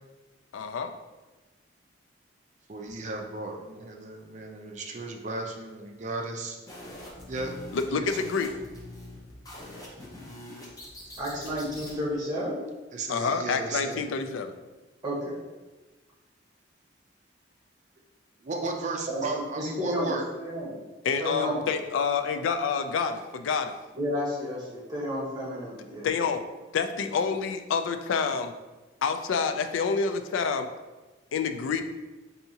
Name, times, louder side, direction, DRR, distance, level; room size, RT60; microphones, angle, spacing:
voice 1, 0.5-0.9 7.7-8.5 13.1-14.6 21.0-23.7 26.0-26.4 26.7-28.5 29.0-30.7 31.3-31.8, left 5 dB, 85° left, 8 dB, 0.3 m, -28 dB
voice 2, 2.7-6.6 7.3-7.5 7.9-8.1 12.9-14.0 18.4-20.2, right 3 dB, 40° right, 2 dB, 0.4 m, -35 dB
sound 1, 6.7-12.0, left 1 dB, 20° left, 0.8 m, -44 dB
voice 3, 11.2-12.6 15.0-15.4 19.1-19.2 19.5-20.7 21.2-21.7 23.9-26.3, equal, 20° right, -5 dB, 1.0 m, -31 dB
4.5 x 2.7 x 2.8 m, 1.2 s
head